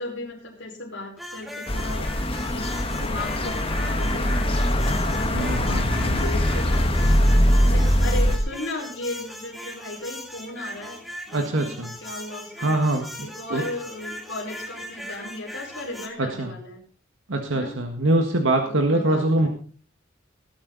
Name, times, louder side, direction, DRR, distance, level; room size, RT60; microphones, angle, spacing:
voice 1, 0.0-2.1 2.5-4.7 5.1-7.4 7.7-11.7 12.0-12.8 13.2-16.8 17.5-17.8 18.6-19.5, left 2 dB, 70° left, -2 dB, 5.2 m, -36 dB
sound 1, 1.2-16.1, equal, ahead, 1.9 m, -39 dB
sound 2, 1.7-8.4, equal, 30° left, 1.6 m, -22 dB
voice 2, 5.3-6.2 11.3-11.9 12.6-13.0 13.5-13.6 16.4-16.5 17.3-19.5, right 1 dB, 80° right, 4 dB, 1.7 m, -23 dB
19.0 x 8.7 x 4.1 m, 0.41 s
head